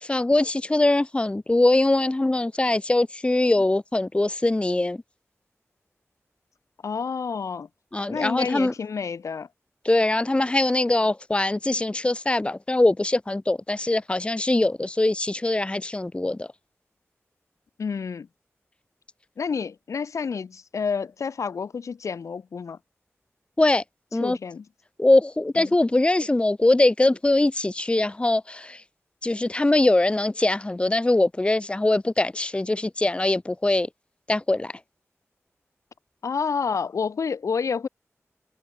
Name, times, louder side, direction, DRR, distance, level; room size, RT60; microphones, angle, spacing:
voice 1, 0.0-5.0 7.9-8.7 9.8-16.5 23.6-23.8 24.1-24.4 25.0-28.8 29.2-33.9 34.3-34.7, left 2 dB, 20° left, 1.1 m, -22 dB
voice 2, 6.8-7.7 8.1-9.5 17.8-18.3 19.4-22.8 24.2-24.6 25.6-25.7 36.2-37.9, left 5 dB, 90° left, 2.0 m, -29 dB
wide cardioid pair, 85°, 5 cm